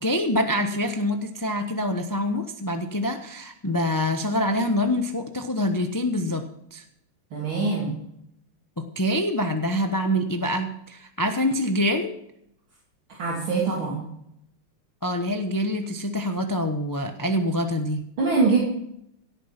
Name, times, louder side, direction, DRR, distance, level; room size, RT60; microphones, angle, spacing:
voice 1, 0.0-6.4 6.7-6.8 8.9-12.1 15.0-18.1, left 1 dB, 25° left, 5 dB, 0.4 m, -25 dB
voice 2, 7.3-7.9 13.2-14.1 18.2-18.6, right 4 dB, 75° right, -4 dB, 3.8 m, -23 dB
17.0 x 9.2 x 6.0 m, 0.75 s
omnidirectional pair, 2.3 m